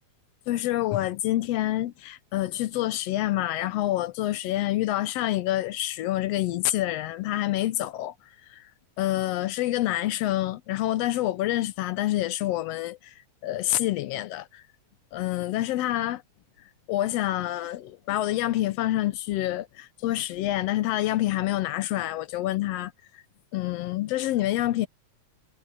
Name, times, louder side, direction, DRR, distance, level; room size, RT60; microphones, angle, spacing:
voice 1, 0.5-8.1 8.5-8.6 9.0-13.1 13.4-14.6 15.1-16.2 16.9-22.9 23.5-24.9, left 15 dB, 75° left, 1.6 m, -27 dB
omnidirectional pair, 3.3 m